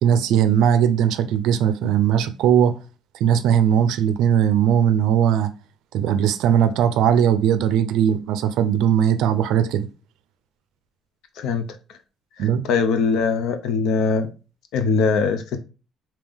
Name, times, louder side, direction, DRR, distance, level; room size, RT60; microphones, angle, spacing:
voice 1, 0.0-2.7 3.2-5.5 5.9-9.9 12.4-12.6, right 9 dB, 80° right, 0.4 m, -19 dB
voice 2, 12.4-14.3 14.7-15.6, left 5 dB, 70° left, 0.6 m, -21 dB
3.5 x 2.8 x 3.4 m
cardioid pair, 175°, 0 cm